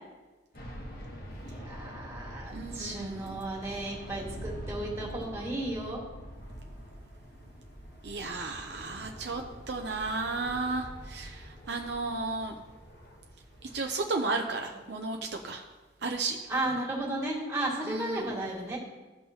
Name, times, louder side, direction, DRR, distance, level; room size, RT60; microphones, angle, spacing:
sound 1, 0.5-13.8, equal, 55° left, 1.3 m, -45 dB
voice 1, 1.4-6.0 16.5-18.8, right 1 dB, 15° right, -5 dB, 2.0 m, -34 dB
voice 2, 2.5-3.4 8.0-12.5 13.7-15.6 16.0-16.4 17.8-18.3, right 3 dB, 65° right, 2 dB, 0.6 m, -34 dB
14.5 x 5.5 x 2.9 m, 1.2 s
head